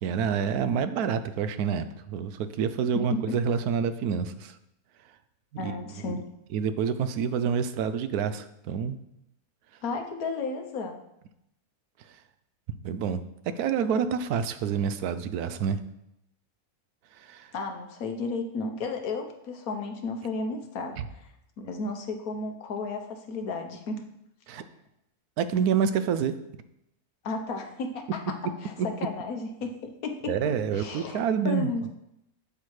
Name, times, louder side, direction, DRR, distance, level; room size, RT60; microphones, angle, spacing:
voice 1, 0.0-4.5 5.6-5.8 6.0-6.2 6.5-9.0 12.8-13.2 13.6-15.8 17.1-17.5 21.0-21.1 24.5-24.6 25.4-26.3 28.8-28.9 30.3-31.9, right 7 dB, 80° right, 11 dB, 1.1 m, -28 dB
voice 2, 5.6-6.3 9.8-10.9 17.5-21.3 21.6-24.0 27.2-28.0 28.6-30.3 30.7-31.9, left 3 dB, 70° left, 4 dB, 1.4 m, -33 dB
8.5 x 7.8 x 3.2 m, 0.82 s
omnidirectional pair, 1.6 m